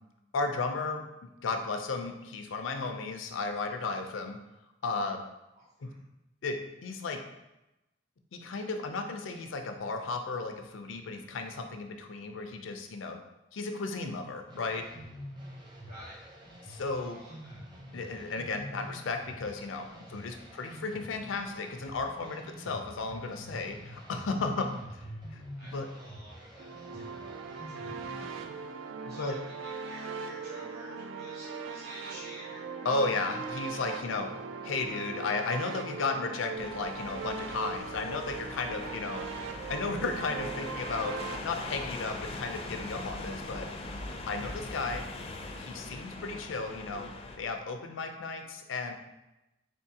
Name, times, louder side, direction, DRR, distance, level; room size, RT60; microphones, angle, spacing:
voice 1, 0.3-1.0 1.4-4.4 4.8-5.2 5.8-5.9 6.4-7.2 8.3-13.2 13.5-14.8 16.7-17.2 17.9-25.1 25.3-25.4 25.7-25.9 29.0-29.4 32.8-34.3 34.6-39.3 39.7-41.2 41.4-43.7 44.3-45.0 45.6-47.1 47.4-48.9, left 3 dB, 90° left, 5 dB, 0.5 m, -34 dB
voice 2, 5.5-6.0 15.9-16.2 17.1-17.6 20.1-20.4 25.6-27.2 27.5-28.5 29.1-32.6, right 1 dB, 55° right, -7 dB, 0.9 m, -51 dB
sound 1, 14.5-28.5, equal, 25° right, 0.6 m, -47 dB
sound 2, 26.6-41.4, right 5 dB, 75° right, 0.3 m, -40 dB
sound 3, 36.6-47.4, left 2 dB, 30° left, 0.4 m, -41 dB
3.9 x 3.5 x 2.8 m, 0.95 s
head